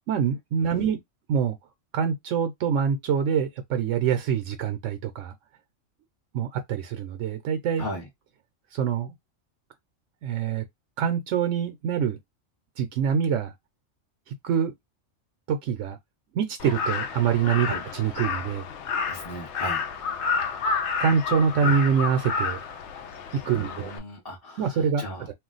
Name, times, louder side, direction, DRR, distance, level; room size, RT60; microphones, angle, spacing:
voice 1, 0.1-1.0 1.3-1.6 1.9-5.3 6.3-7.8 8.7-9.1 10.2-10.6 11.0-12.2 12.8-13.5 14.3-14.7 15.5-16.0 16.3-18.7 21.0-22.6 23.5-23.9 24.6-25.0, right 7 dB, 75° right, 0.9 m, -25 dB
voice 2, 7.8-8.1 17.6-17.8 19.1-19.8 23.5-25.3, left 1 dB, 20° left, 0.7 m, -37 dB
Crow, 16.6-24.0, left 5 dB, 70° left, 0.8 m, -30 dB
2.4 x 2.2 x 3.8 m
omnidirectional pair, 1.3 m